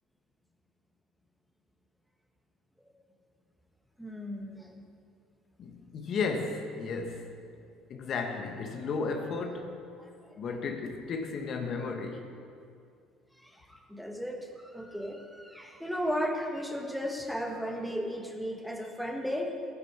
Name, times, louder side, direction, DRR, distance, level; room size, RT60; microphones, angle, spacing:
voice 1, 4.0-4.8 6.1-6.2 10.0-10.3 13.4-19.6, equal, ahead, 2 dB, 1.5 m, -35 dB
voice 2, 5.6-7.3 7.9-9.7 10.4-12.2, left 4 dB, 50° left, 4 dB, 1.2 m, -34 dB
13.0 x 9.8 x 4.7 m, 2.4 s
hypercardioid pair, 75°, 0 cm